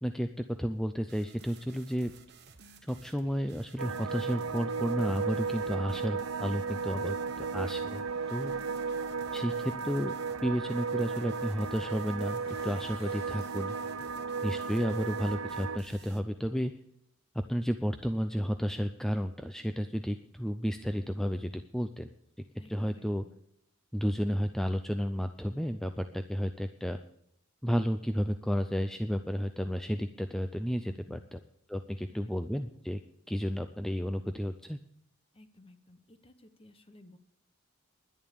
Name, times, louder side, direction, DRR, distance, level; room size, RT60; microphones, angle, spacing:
voice 1, 0.0-2.1 2.9-8.0 8.3-8.5 9.3-10.1 10.4-13.8 14.4-16.7 17.5-22.1 22.7-23.2 23.9-27.0 27.6-31.4 31.7-33.0 33.3-34.8, equal, ahead, 7 dB, 0.4 m, -32 dB
sound 1, 1.1-16.2, right 4 dB, 55° right, 1.2 m, -55 dB
sound 2, 3.8-15.8, right 5 dB, 75° right, 0.8 m, -35 dB
sound 3, 4.1-14.1, left 2 dB, 45° left, 3.0 m, -58 dB
voice 2, 22.6-23.4 30.8-31.2 31.9-32.6 35.3-37.2, left 2 dB, 25° left, 9 dB, 1.0 m, -57 dB
11.0 x 10.5 x 6.8 m, 0.71 s
head